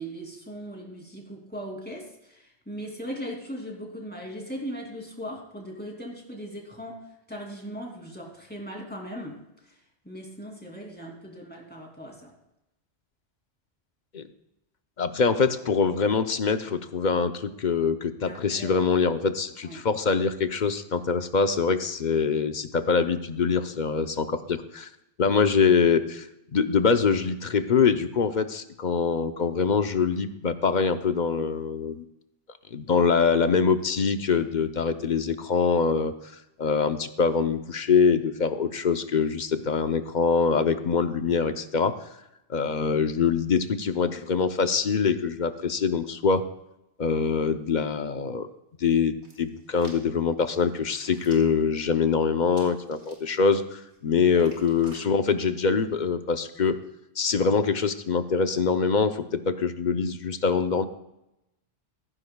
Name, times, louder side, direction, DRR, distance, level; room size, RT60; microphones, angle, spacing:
voice 1, 0.0-7.0 7.3-9.4 10.0-12.3 18.2-18.7 19.6-19.8 54.3-54.5, equal, 10° left, -1 dB, 2.7 m, -38 dB
voice 2, 15.0-24.9 25.2-26.3 26.5-32.0 32.7-36.1 36.6-42.0 42.5-46.4 47.0-48.5 48.8-56.8 57.2-60.8, left 5 dB, 45° left, 9 dB, 0.7 m, -24 dB
Hands, 49.2-50.0 50.6-51.6 52.5-53.4 53.9-55.1 55.8-56.0, right 1 dB, 70° right, 3.1 m, -52 dB
15.0 x 15.0 x 2.3 m, 0.88 s
omnidirectional pair, 1.2 m